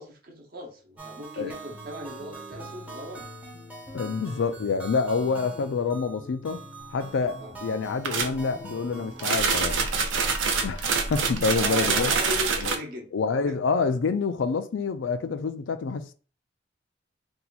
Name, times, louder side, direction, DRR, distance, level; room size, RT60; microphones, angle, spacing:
voice 1, 0.0-3.3 7.4-7.5 11.5-13.1 13.5-13.6, equal, 50° right, 0.9 m, -37 dB
sound 1, 1.0-11.4, right 4 dB, 5° right, 0.6 m, -45 dB
sound 2, 1.7-9.2, left 2 dB, 30° left, 0.6 m, -46 dB
voice 2, 3.9-6.6 6.9-9.9 10.6-12.1 12.6-12.7 13.1-16.1, left 4 dB, 80° left, 0.4 m, -27 dB
sound 3, 8.0-8.4 9.2-12.8, right 5 dB, 90° right, 0.6 m, -25 dB
2.8 x 2.3 x 4.0 m
head